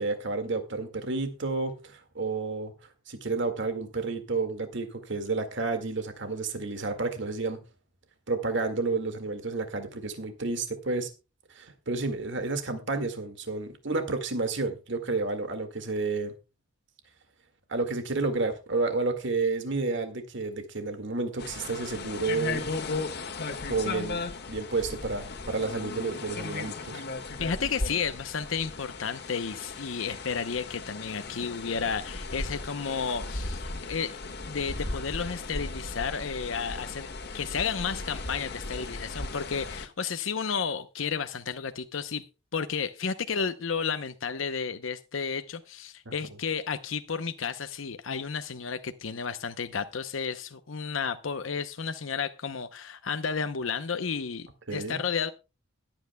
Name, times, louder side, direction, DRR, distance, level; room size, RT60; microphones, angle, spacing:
voice 1, 0.0-2.7 3.1-7.6 8.3-11.1 11.6-16.3 17.7-22.6 23.7-24.2 24.5-27.0 46.1-46.2 54.7-55.0, right 3 dB, 65° right, 7 dB, 2.0 m, -30 dB
sound 1, 21.4-39.9, left 3 dB, 55° left, 1.7 m, -36 dB
voice 2, 27.4-34.2 34.5-37.1 37.3-42.2 42.5-55.3, left 6 dB, 80° left, 9 dB, 0.7 m, -32 dB
21.0 x 8.9 x 2.2 m, 0.29 s
head